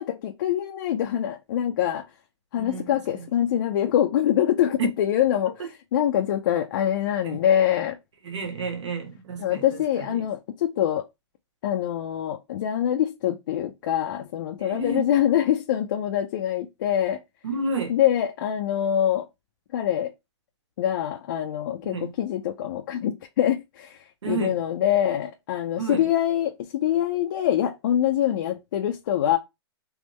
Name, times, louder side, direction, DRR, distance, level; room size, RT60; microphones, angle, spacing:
voice 1, 0.0-2.0 2.5-8.0 9.4-11.0 11.6-17.2 17.9-19.2 19.7-20.1 20.8-24.0 24.3-29.4, left 11 dB, 45° left, 0.5 m, -24 dB
voice 2, 2.6-3.3 4.8-4.9 5.6-5.7 7.2-7.4 8.2-10.3 14.6-15.1 17.4-18.0 21.8-22.1 24.2-24.6 25.8-26.0, right 4 dB, 85° right, 1.5 m, -31 dB
3.5 x 3.1 x 3.1 m
hypercardioid pair, 160°, 15 cm